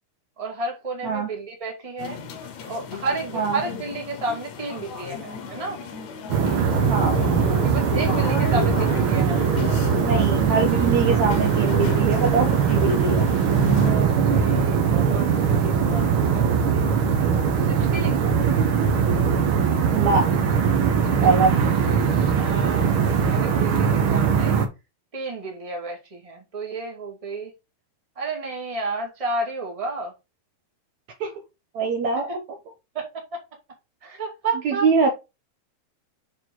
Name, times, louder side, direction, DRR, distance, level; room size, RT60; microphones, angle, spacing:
voice 1, 0.4-2.2 2.7-5.8 7.6-9.5 13.7-16.9 17.7-18.2 22.3-24.6 25.1-27.5 28.1-30.1 32.9-33.4 34.0-34.9, right 3 dB, 15° right, 1.6 m, -31 dB
sound 1, 2.0-13.9, left 6 dB, 65° left, 2.0 m, -34 dB
sound 2, 6.3-24.7, right 6 dB, 90° right, 1.1 m, -21 dB
voice 2, 6.9-7.2 10.0-13.3 18.5-18.7 19.9-20.3 21.2-21.5 31.2-31.4 31.7-32.4 34.7-35.1, right 4 dB, 65° right, 2.0 m, -23 dB
6.6 x 4.8 x 3.8 m
omnidirectional pair, 4.2 m